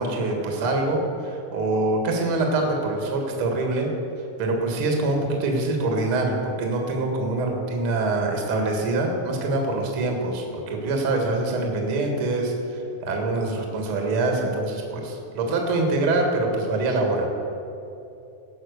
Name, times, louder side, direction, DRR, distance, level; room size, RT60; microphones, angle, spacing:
voice 1, 0.0-3.9 4.4-17.3, right 2 dB, 45° right, 2 dB, 2.0 m, -24 dB
16.5 x 5.9 x 6.5 m, 2.7 s
omnidirectional pair, 4.2 m